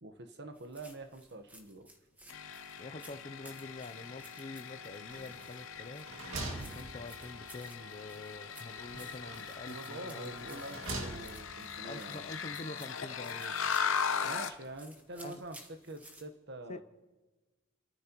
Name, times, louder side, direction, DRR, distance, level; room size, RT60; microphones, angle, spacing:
voice 1, 0.0-1.9 9.7-12.3 14.2-16.8, right 2 dB, 55° right, 1.2 m, -46 dB
sound 1, 0.5-16.2, right 1 dB, 10° right, 1.5 m, -58 dB
sound 2, 2.3-14.6, left 6 dB, 75° left, 0.8 m, -39 dB
voice 2, 2.8-6.1 6.7-10.6 11.8-13.6 15.2-15.4 16.7-16.8, left 2 dB, 35° left, 0.6 m, -46 dB
sound 3, 5.1-5.6 5.9-7.5 8.8-9.6 10.3-11.6, right 2 dB, 85° right, 2.2 m, -43 dB
30.0 x 13.5 x 3.0 m
head